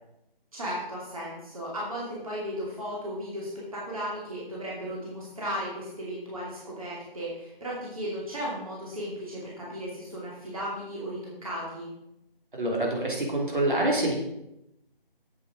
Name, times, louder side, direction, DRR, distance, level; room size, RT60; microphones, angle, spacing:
voice 1, 0.5-11.9, equal, 35° right, -6 dB, 2.6 m, -35 dB
voice 2, 12.5-14.1, right 1 dB, 55° right, -1 dB, 3.2 m, -26 dB
8.1 x 7.9 x 5.0 m, 0.85 s
figure-of-eight pair, 170°, 29 cm